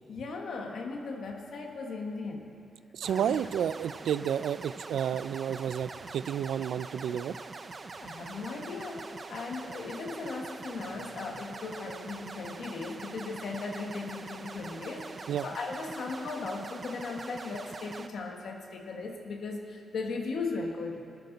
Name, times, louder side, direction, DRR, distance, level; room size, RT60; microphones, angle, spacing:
voice 1, 0.1-2.5 3.0-3.4 8.0-21.0, left 3 dB, 60° left, 2 dB, 1.4 m, -37 dB
voice 2, 2.9-7.4 15.3-15.5, right 9 dB, 80° right, 15 dB, 0.3 m, -31 dB
sound 1, 3.0-18.1, right 3 dB, 30° right, 0.5 m, -44 dB
21.0 x 13.0 x 4.0 m, 2.4 s
wide cardioid pair, 175°, 0 cm